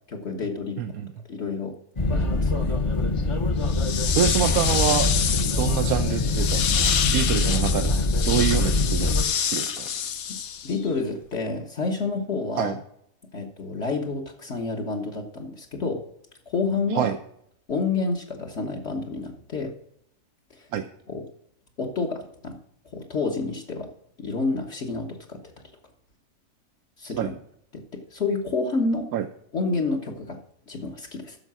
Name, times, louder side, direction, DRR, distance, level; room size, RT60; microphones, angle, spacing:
voice 1, 0.1-0.8 1.3-1.7 2.1-2.8 3.9-4.2 10.3-10.4 10.6-12.8 13.3-16.0 16.5-17.1 17.7-19.7 20.6-20.7 21.1-21.2 21.8-22.6 22.9-23.9 24.2-25.4 27.0-27.3 27.7-29.1 29.5-30.4 30.7-31.4, left 3 dB, 55° left, 0 dB, 1.5 m, -29 dB
voice 2, 0.8-1.1 4.2-5.1 5.6-9.9 12.6-12.7 16.9-17.2 20.7-20.9 27.0-27.3 29.1-29.2, right 10 dB, 90° right, 7 dB, 1.1 m, -26 dB
sound 1, 2.0-9.2, left 2 dB, 30° left, 0.7 m, -24 dB
sound 2, 3.6-10.9, left 8 dB, 90° left, 1.4 m, -27 dB
9.7 x 6.5 x 6.1 m, 0.72 s
omnidirectional pair, 1.5 m